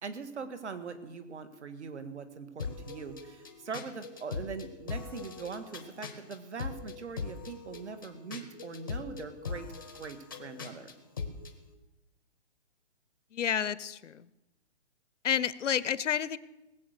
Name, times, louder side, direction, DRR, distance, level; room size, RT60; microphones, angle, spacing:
voice 1, 0.0-9.7 9.9-10.9, right 5 dB, 70° right, 10 dB, 1.7 m, -42 dB
sound 1, 2.6-11.6, left 4 dB, 20° left, 0.6 m, -41 dB
voice 2, 13.3-14.3 15.2-16.4, left 8 dB, 85° left, 18 dB, 0.8 m, -30 dB
19.0 x 7.7 x 6.6 m, 1.0 s
hypercardioid pair, 175°, 36 cm